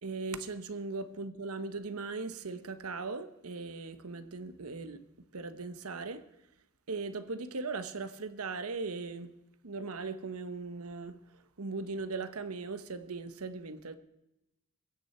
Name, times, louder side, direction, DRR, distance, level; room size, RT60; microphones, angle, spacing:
voice 1, 0.0-5.0 5.3-6.2 6.9-9.3 9.6-11.2 11.6-14.0, right 3 dB, 85° right, 1.0 m, -39 dB
22.5 x 9.9 x 4.4 m
head